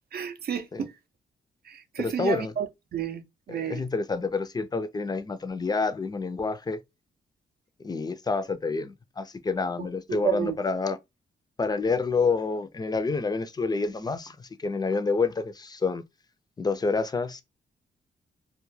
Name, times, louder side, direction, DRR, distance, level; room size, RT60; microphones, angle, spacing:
voice 1, 0.1-0.9 1.7-3.8 9.8-10.6, right 7 dB, 55° right, 0.5 m, -31 dB
voice 2, 2.0-2.5 3.5-6.8 7.8-11.0 11.6-16.0 16.6-17.4, left 4 dB, 20° left, 0.4 m, -28 dB
2.3 x 2.1 x 3.1 m
cardioid pair, 75°, 19 cm